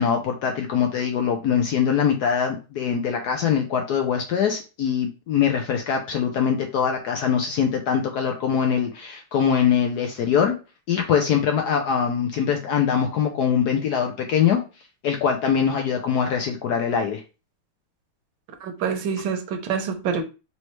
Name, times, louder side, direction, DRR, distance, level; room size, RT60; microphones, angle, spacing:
voice 1, 0.0-10.6 10.9-14.6 15.0-17.2, left 7 dB, 75° left, 3 dB, 0.9 m, -23 dB
voice 2, 18.6-20.2, right 6 dB, 65° right, 5 dB, 1.3 m, -26 dB
4.2 x 3.1 x 3.1 m, 0.31 s
omnidirectional pair, 2.4 m